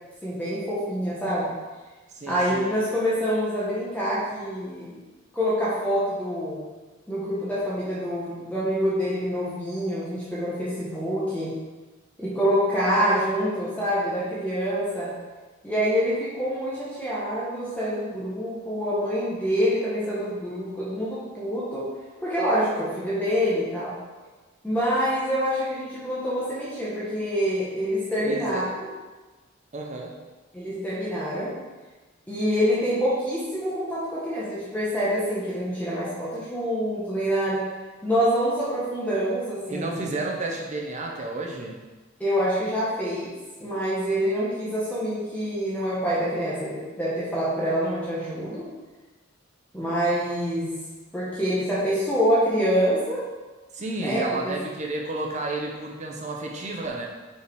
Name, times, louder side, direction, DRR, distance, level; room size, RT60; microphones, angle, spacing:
voice 1, 0.2-1.5 2.3-5.0 5.3-6.6 7.1-11.5 12.2-15.1 15.6-21.9 22.2-23.9 24.6-28.7 30.5-31.5 32.3-37.6 38.0-40.1 42.2-43.3 43.6-48.6 49.7-50.8 51.1-53.2 54.0-54.6, equal, 10° left, -9 dB, 1.3 m, -26 dB
voice 2, 2.1-2.6 28.2-28.6 29.7-30.1 39.7-41.8 53.7-57.1, right 2 dB, 40° right, 0 dB, 0.8 m, -31 dB
5.5 x 5.1 x 4.7 m, 1.2 s
head